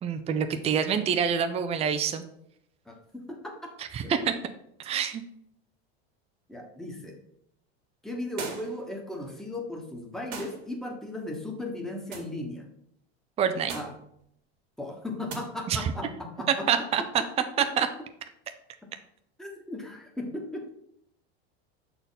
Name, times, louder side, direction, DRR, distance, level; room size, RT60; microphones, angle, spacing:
voice 1, 0.0-2.2 3.9-4.3 4.8-5.2 13.4-13.8 15.7-15.8 16.7-17.0 17.8-17.9, right 7 dB, 20° right, 8 dB, 0.5 m, -26 dB
voice 2, 2.8-3.7 4.0-4.1 6.5-7.2 8.0-12.7 13.7-13.9 14.8-16.8 19.4-20.7, left 1 dB, ahead, 0 dB, 1.2 m, -37 dB
sound 1, 8.4-8.9 10.3-10.6 12.1-12.4 13.7-14.0 15.3-15.4, right 5 dB, 80° right, 1.9 m, -38 dB
6.6 x 4.3 x 4.0 m, 0.73 s
supercardioid pair, 125°, 32 cm